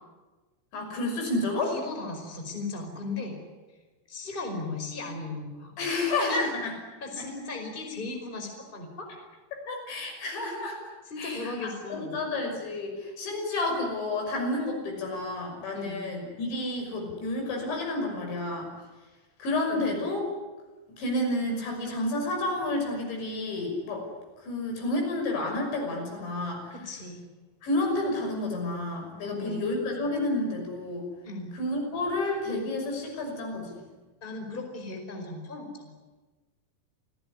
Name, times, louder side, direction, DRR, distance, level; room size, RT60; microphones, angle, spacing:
voice 1, 0.7-1.7 5.8-6.8 7.2-7.3 9.7-10.8 11.2-18.7 19.4-20.2 20.9-24.1 24.4-26.7 27.6-31.1 31.5-33.8, left 2 dB, 75° left, 2 dB, 8.3 m, -30 dB
voice 2, 1.7-3.4 4.1-5.7 6.3-6.4 7.0-9.1 11.1-12.2 15.7-16.0 19.7-20.0 26.7-27.3 29.2-29.7 31.2-31.6 34.2-35.9, left 3 dB, 10° left, 4 dB, 4.7 m, -37 dB
28.5 x 18.5 x 9.9 m, 1.2 s
omnidirectional pair, 5.2 m